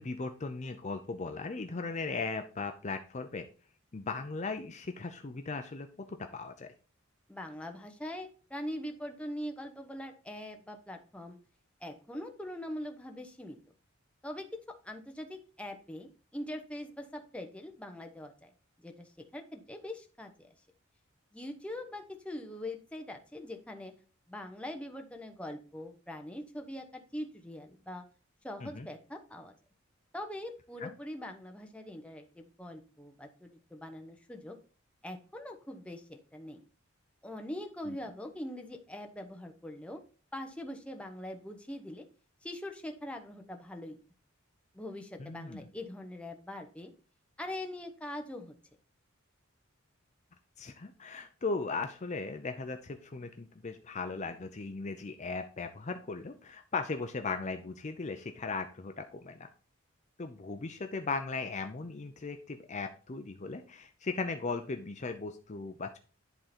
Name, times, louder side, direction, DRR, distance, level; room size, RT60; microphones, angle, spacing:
voice 1, 0.0-3.5 3.9-6.7 28.6-28.9 30.8-30.9 37.9-38.0 45.2-45.6 50.6-59.5 60.2-66.0, left 4 dB, 35° left, 6 dB, 0.6 m, -37 dB
voice 2, 7.3-11.4 11.8-13.6 14.2-18.5 18.8-20.5 21.3-23.9 24.3-28.0 28.4-29.5 30.1-34.6 35.0-36.6 37.2-40.0 40.3-42.0 42.4-44.0 44.7-46.9 47.4-48.6, left 1 dB, 5° left, 4 dB, 0.9 m, -42 dB
10.5 x 3.8 x 4.2 m, 0.37 s
head